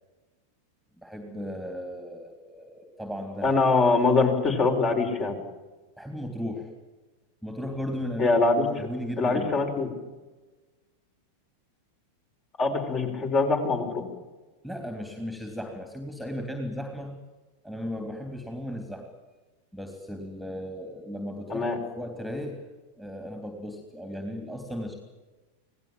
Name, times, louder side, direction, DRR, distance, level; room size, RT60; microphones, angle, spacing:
voice 1, 1.0-3.5 6.0-6.7 7.4-8.3 8.8-9.6 14.6-17.2 17.6-19.1 19.7-21.7 22.0-22.7 23.0-24.9, equal, ahead, 5 dB, 3.2 m, -36 dB
voice 2, 3.4-5.4 8.2-8.9 9.2-9.9 12.6-14.0 21.5-21.8, left 3 dB, 30° left, 4 dB, 5.1 m, -23 dB
27.5 x 18.0 x 7.5 m, 1.2 s
figure-of-eight pair, 90°, 0 cm